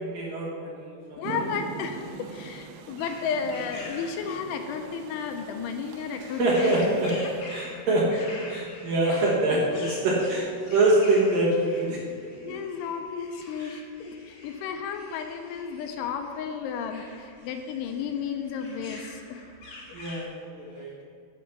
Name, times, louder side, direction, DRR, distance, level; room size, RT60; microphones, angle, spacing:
voice 1, 0.0-1.4 6.4-7.1 7.5-12.2 12.4-12.6 13.6-13.7 19.9-20.9, right 1 dB, 60° right, -5 dB, 2.5 m, -25 dB
voice 2, 1.2-6.7 12.4-19.4, left 6 dB, 80° left, 5 dB, 2.9 m, -33 dB
Rain, 1.2-7.4, right 7 dB, 85° right, 3.1 m, -42 dB
sound 1, 1.8-20.2, left 2 dB, 55° left, 4.7 m, -46 dB
9.0 x 7.4 x 6.0 m, 2.3 s
omnidirectional pair, 5.5 m